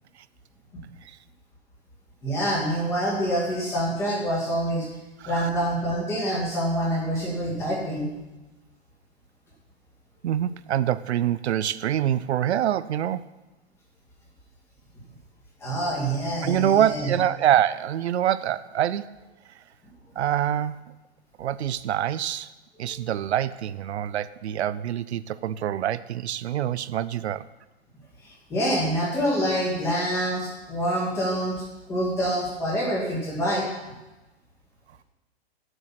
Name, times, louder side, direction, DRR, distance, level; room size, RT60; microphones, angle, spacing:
voice 1, 2.2-4.9 5.3-8.1 15.6-17.2 22.8-23.0 28.2-33.8, equal, 10° left, 2.0 m, -26 dB
voice 2, 10.2-13.4 16.4-19.2 20.2-20.9 21.4-22.5 22.8-27.5, right 11 dB, 90° right, 0.6 m, -25 dB
9.9 x 8.0 x 5.9 m
hypercardioid pair, 170°, 32 cm